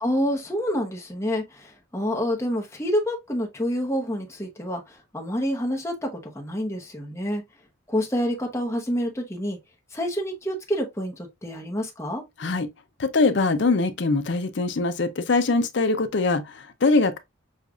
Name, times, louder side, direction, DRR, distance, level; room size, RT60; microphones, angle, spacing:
voice 1, 0.0-7.4 7.9-9.6 9.9-12.2, equal, 15° left, 0.8 m, -28 dB
voice 2, 13.0-17.2, left 3 dB, 55° left, 0.5 m, -22 dB
6.4 x 2.4 x 2.4 m
head